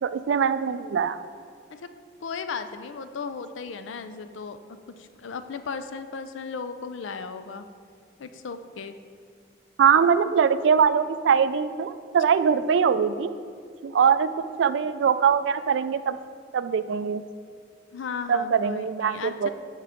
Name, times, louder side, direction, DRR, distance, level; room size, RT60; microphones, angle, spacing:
voice 1, 0.0-1.2 9.8-13.3 13.8-14.3 14.6-16.2 16.5-17.2 18.3-19.5, right 7 dB, 70° right, 13 dB, 0.3 m, -22 dB
voice 2, 2.2-7.7 8.2-9.0 17.9-19.5, left 5 dB, 80° left, 10 dB, 0.5 m, -36 dB
9.5 x 5.7 x 3.5 m, 2.1 s
head